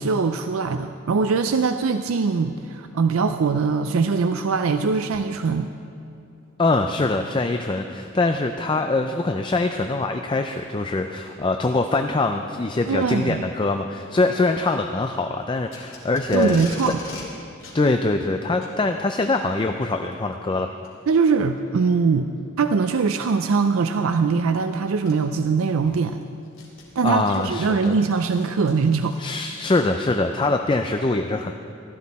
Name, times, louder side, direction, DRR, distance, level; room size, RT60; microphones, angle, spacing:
voice 1, 0.0-5.7 12.9-13.4 16.3-17.0 21.1-26.2 27.0-29.2, right 5 dB, 80° right, 8 dB, 0.4 m, -22 dB
voice 2, 6.6-16.9 17.7-20.7 27.0-27.9 29.2-31.5, left 2 dB, 25° left, 6 dB, 0.4 m, -23 dB
Packing tape duct tape, 15.7-17.3 17.6-17.8 18.5-18.7 19.9-20.1 20.8-20.9 21.6-21.7 23.2-23.5 24.6-24.7 25.0-25.1 25.6-29.5, left 2 dB, 70° left, 3.2 m, -41 dB
15.0 x 13.5 x 4.2 m, 2.7 s
head